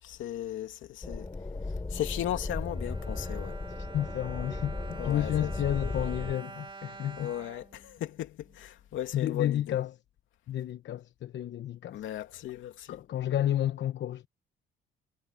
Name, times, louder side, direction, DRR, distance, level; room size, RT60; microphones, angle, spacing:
voice 1, 0.0-1.3 1.9-3.6 5.0-5.5 7.2-9.6 11.9-13.0, left 12 dB, 80° left, 2.7 m, -36 dB
sound 1, 1.0-6.4, left 3 dB, 20° left, 6.1 m, -36 dB
Bowed string instrument, 2.3-8.6 9.3-9.4 9.7-9.8, right 4 dB, 25° right, 3.2 m, -47 dB
voice 2, 3.8-7.3 9.1-9.9 10.5-12.0 12.9-14.3, left 11 dB, 65° left, 1.0 m, -31 dB
cardioid pair, 90°, 20 cm